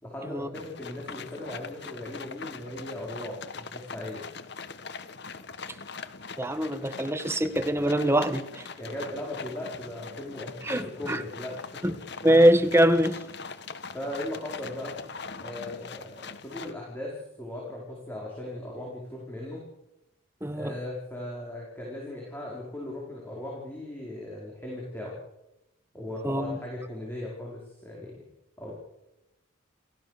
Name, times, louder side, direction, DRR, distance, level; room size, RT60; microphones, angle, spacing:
voice 1, 0.0-4.3 8.8-11.8 13.9-15.0 15.4-19.6 20.5-25.2 25.9-28.2 28.6-28.7, left 1 dB, 10° left, 5.1 m, -38 dB
sound 1, 0.5-16.7, left 5 dB, 55° left, 1.4 m, -42 dB
voice 2, 6.4-8.7 10.6-11.2 11.8-11.9 12.2-13.2 20.4-20.8 26.2-26.6, right 1 dB, 10° right, 1.5 m, -23 dB
28.5 x 15.5 x 6.9 m
head